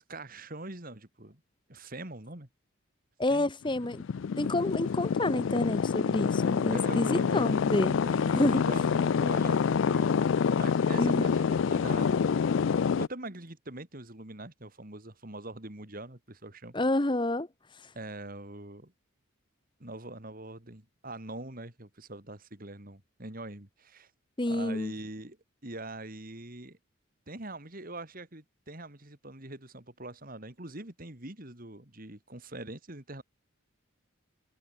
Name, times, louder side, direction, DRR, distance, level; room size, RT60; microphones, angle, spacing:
voice 1, 0.0-1.4 1.7-2.5 3.3-3.5 6.7-7.7 8.0-10.1 10.6-12.4 12.6-16.7 17.9-18.9 19.8-24.1 24.5-25.4 25.6-26.8 27.3-33.2, right 2 dB, 40° right, 2.8 m, -43 dB
voice 2, 3.2-4.0 4.4-8.0 8.2-8.6 11.0-11.3 16.7-17.5 24.4-24.9, left 1 dB, 20° left, 1.0 m, -29 dB
sound 1, 3.7-13.1, left 6 dB, 60° left, 0.4 m, -27 dB
head